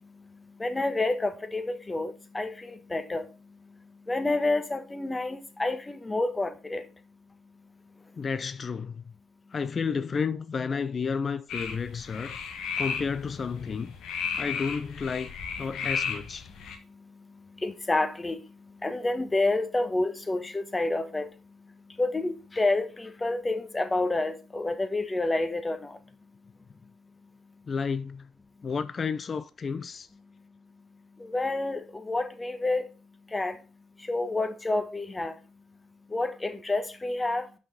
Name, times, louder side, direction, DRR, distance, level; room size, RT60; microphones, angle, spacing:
voice 1, 0.6-3.2 4.1-6.8 17.6-18.4 18.8-21.3 22.0-25.8 31.3-32.8 33.3-33.5 34.1-35.3 36.1-37.4, left 2 dB, 20° left, 1.3 m, -28 dB
voice 2, 8.2-9.1 9.5-12.4 12.8-13.9 14.3-16.5 27.7-28.3 28.6-30.1, left 5 dB, 45° left, 0.7 m, -31 dB
sound 1, 11.5-16.8, left 6 dB, 65° left, 1.1 m, -34 dB
6.0 x 5.4 x 5.0 m
hypercardioid pair, 45°, 0 cm